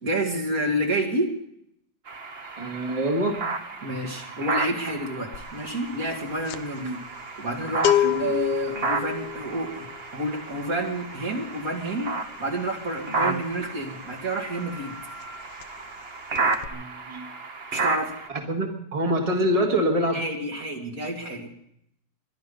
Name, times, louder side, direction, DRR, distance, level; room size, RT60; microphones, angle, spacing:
voice 1, 0.0-1.3 3.8-7.0 7.4-9.9 10.1-12.1 12.4-14.9 17.7-18.1 20.1-21.5, right 1 dB, 55° right, 1 dB, 2.7 m, -29 dB
sound 1, 2.1-18.3, right 3 dB, 40° right, 1.3 m, -33 dB
voice 2, 2.6-3.4 6.8-7.0 8.0-8.3 13.2-13.4 16.7-17.3 18.3-20.2, right 1 dB, 20° right, 2 dB, 1.7 m, -26 dB
sound 2, 5.3-5.6 5.9-14.5 14.7-15.0 15.2-16.1 16.3-16.7, left 11 dB, 90° left, 1.5 m, -29 dB
22.0 x 11.5 x 5.5 m, 0.75 s
omnidirectional pair, 1.8 m